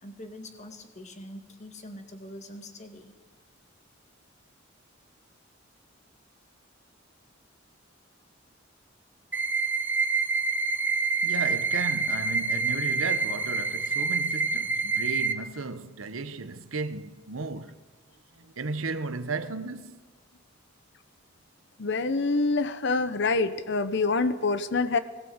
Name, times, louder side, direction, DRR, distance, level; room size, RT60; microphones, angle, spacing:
voice 1, 0.0-3.2, left 1 dB, 35° left, 2.1 m, -44 dB
sound 1, 9.3-15.3, right 4 dB, 10° right, 1.0 m, -27 dB
voice 2, 11.2-17.7 18.4-20.0, right 3 dB, 80° right, 1.0 m, -34 dB
voice 3, 21.8-25.0, left 3 dB, 60° left, 0.9 m, -26 dB
19.5 x 17.0 x 8.0 m
head